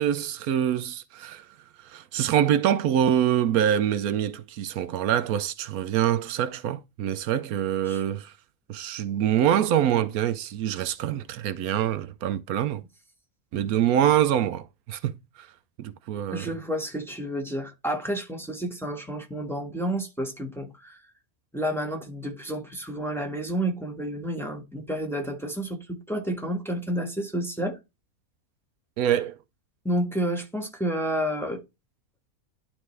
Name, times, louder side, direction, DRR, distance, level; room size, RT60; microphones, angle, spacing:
voice 1, 0.0-1.4 1.8-8.3 8.7-12.8 13.5-15.5 15.8-16.5 29.0-29.4, right 10 dB, 80° right, 1.1 m, -25 dB
voice 2, 16.3-21.0 21.5-27.8 29.8-31.6, equal, ahead, 1.5 m, -30 dB
11.5 x 4.1 x 3.3 m
omnidirectional pair, 1.5 m